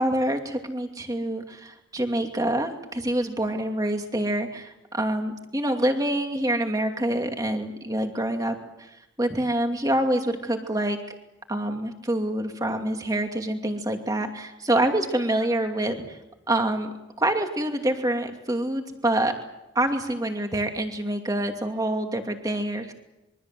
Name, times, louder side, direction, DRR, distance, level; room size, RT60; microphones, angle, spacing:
voice 1, 0.0-11.0 11.5-16.2 16.5-19.3 19.7-22.9, right 1 dB, 20° right, 4 dB, 2.5 m, -26 dB
26.5 x 23.5 x 7.7 m, 0.93 s
head